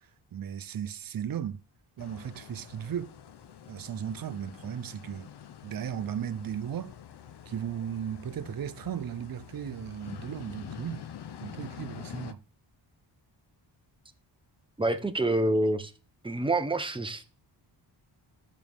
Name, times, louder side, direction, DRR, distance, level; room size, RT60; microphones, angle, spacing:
voice 1, 0.0-1.6 2.0-3.1 3.7-5.3 5.6-6.9 7.5-11.1 11.4-12.4, right 9 dB, 50° right, 0.7 m, -36 dB
sound 1, 2.0-12.3, left 9 dB, 60° left, 0.8 m, -46 dB
voice 2, 14.8-15.9 16.2-17.2, right 2 dB, 10° right, 0.9 m, -27 dB
13.5 x 6.4 x 3.6 m
cardioid pair, 115°, 46 cm